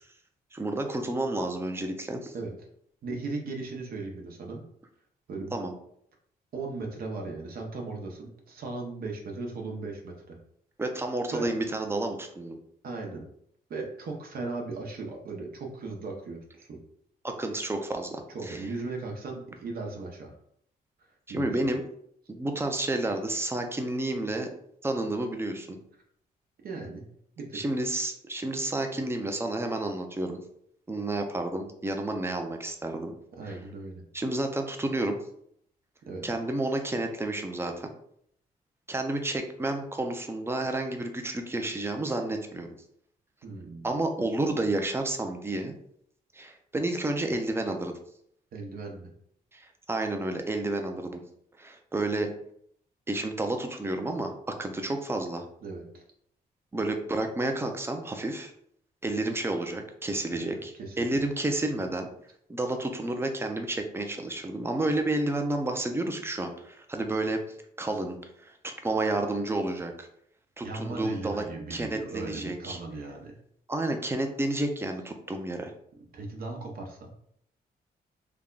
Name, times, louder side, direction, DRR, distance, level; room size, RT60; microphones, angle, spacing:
voice 1, 0.5-2.3 5.5-5.7 10.8-12.6 17.2-18.6 21.3-21.8 22.3-24.5 24.8-25.8 27.5-30.4 30.9-33.1 33.5-33.6 34.1-35.2 36.2-37.9 38.9-42.7 43.8-45.7 46.3-47.9 49.5-51.2 51.6-52.3 53.1-54.3 54.6-55.4 56.7-58.5 59.0-62.1 62.5-67.4 67.8-70.1 70.6-71.4 71.7-72.8 73.7-75.7, right 2 dB, 15° right, 4 dB, 0.5 m, -30 dB
voice 2, 3.0-4.6 5.3-5.5 6.5-10.4 11.3-11.5 12.8-13.3 13.7-16.8 18.3-20.4 21.0-21.7 26.6-27.1 27.4-27.6 33.3-34.1 36.0-36.3 43.4-43.9 48.5-49.1 55.6-56.0 60.3-60.5 60.8-61.2 70.6-73.3 76.1-77.1, right 3 dB, 65° right, 1 dB, 0.9 m, -37 dB
3.4 x 2.2 x 3.8 m, 0.68 s
cardioid pair, 110°, 16 cm